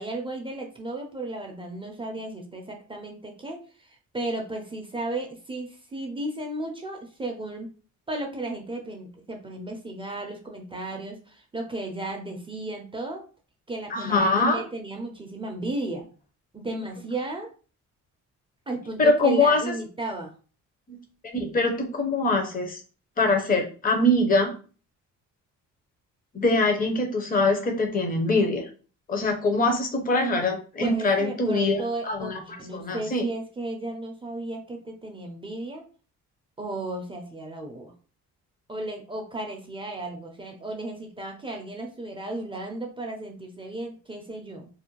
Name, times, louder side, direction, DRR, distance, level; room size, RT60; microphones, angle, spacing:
voice 1, 0.0-7.7 8.1-13.2 13.7-16.1 16.5-17.5 18.7-20.3 30.8-35.8 36.6-37.9 38.7-44.7, right 2 dB, 15° right, 2 dB, 0.5 m, -34 dB
voice 2, 13.9-14.6 19.0-19.7 20.9-21.0 21.2-22.8 23.2-24.5 26.3-28.7 29.1-32.4 32.7-33.2, left 2 dB, 30° left, 4 dB, 0.7 m, -23 dB
2.5 x 2.1 x 2.9 m, 0.37 s
cardioid pair, 110°, 30 cm